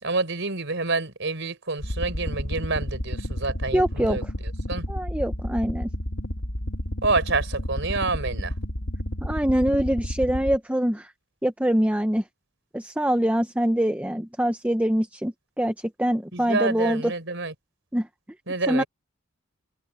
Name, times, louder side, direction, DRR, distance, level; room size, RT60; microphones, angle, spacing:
voice 1, 0.0-4.2 4.7-4.8 7.0-8.5 16.3-17.5 18.5-18.9, right 3 dB, 60° right, 4.9 m, -27 dB
sound 1, 1.8-10.6, equal, 75° left, 3.1 m, -31 dB
voice 2, 3.7-4.2 4.9-5.9 9.2-11.1 11.4-12.2 12.7-17.1 17.9-18.1 18.7-18.8, equal, 5° right, 0.8 m, -24 dB
open air
head